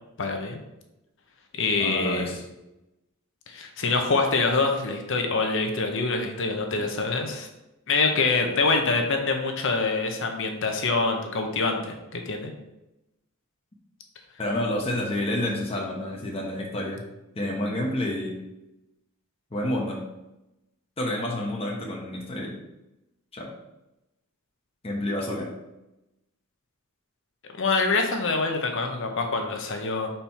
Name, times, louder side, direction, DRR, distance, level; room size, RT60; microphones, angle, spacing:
voice 1, 0.2-0.6 1.5-2.4 3.5-7.5 7.9-12.5 27.6-30.1, left 3 dB, 60° left, 4 dB, 0.9 m, -25 dB
voice 2, 1.8-2.4 6.8-6.9 14.4-17.0 17.3-18.3 19.5-20.0 21.0-22.6 23.3-23.5 24.8-25.5, left 1 dB, 25° left, -2 dB, 1.0 m, -29 dB
5.3 x 4.4 x 4.3 m, 0.93 s
head